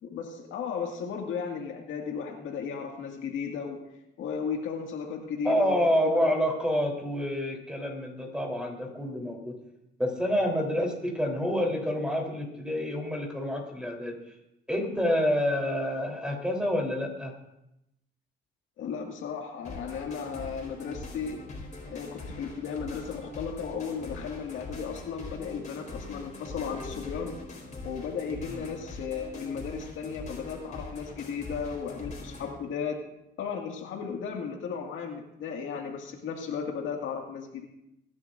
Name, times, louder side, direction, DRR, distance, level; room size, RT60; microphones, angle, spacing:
voice 1, 0.0-3.8 4.2-6.3 18.8-21.4 21.9-27.4 27.8-33.0 33.4-37.7, left 6 dB, 80° left, 1 dB, 2.1 m, -35 dB
voice 2, 5.4-9.6 10.0-14.1 14.7-17.4 28.5-28.6, equal, 5° right, 1 dB, 3.6 m, -28 dB
sound 1, 19.6-32.6, left 2 dB, 40° left, 4.4 m, -42 dB
22.5 x 11.0 x 2.6 m, 0.85 s
cardioid pair, 90°, 20 cm